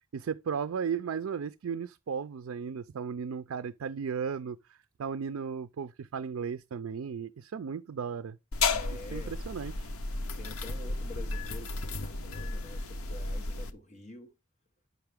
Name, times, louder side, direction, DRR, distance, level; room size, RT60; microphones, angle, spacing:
voice 1, 0.1-4.6 5.0-8.4 8.9-9.9, right 6 dB, 70° right, 0.4 m, -35 dB
sound 1, 8.5-13.7, left 3 dB, 85° left, 0.8 m, -33 dB
voice 2, 8.7-9.3 10.3-14.3, left 2 dB, 35° left, 1.4 m, -47 dB
8.1 x 5.8 x 3.4 m
head